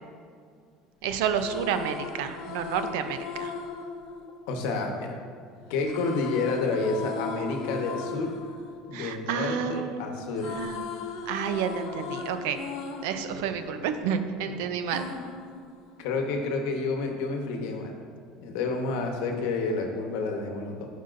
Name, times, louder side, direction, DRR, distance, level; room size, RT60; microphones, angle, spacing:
voice 1, 1.0-3.5 8.9-10.1 10.5-11.0 11.3-12.6 13.0-15.1, right 7 dB, 75° right, 9 dB, 0.5 m, -30 dB
sound 1, 1.2-5.2 5.8-9.9 10.2-14.4 14.9-16.3, left 5 dB, 55° left, 0.6 m, -38 dB
voice 2, 4.5-5.2 5.7-8.3 8.9-10.6 13.3-13.5 16.0-17.9 18.4-20.9, left 3 dB, 70° left, 3 dB, 1.0 m, -29 dB
11.5 x 5.5 x 2.6 m, 2.2 s
cardioid pair, 180°, 0 cm